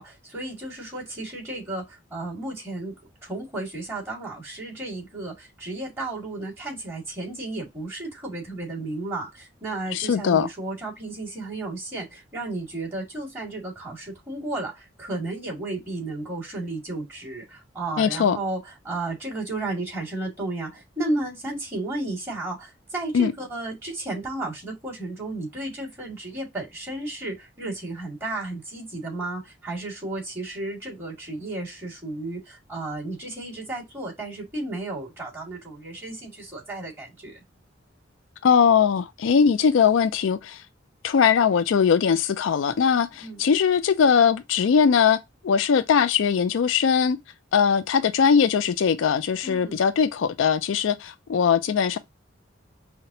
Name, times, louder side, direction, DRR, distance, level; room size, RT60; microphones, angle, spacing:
voice 1, 0.0-2.9 3.2-37.4 43.2-43.4 49.4-49.9, right 2 dB, 15° right, 2.1 m, -33 dB
voice 2, 9.9-10.5 18.0-18.4 23.1-23.3 38.4-40.6 41.0-45.2 45.4-47.2 47.5-52.0, left 6 dB, 80° left, 0.4 m, -20 dB
5.7 x 2.2 x 2.6 m
head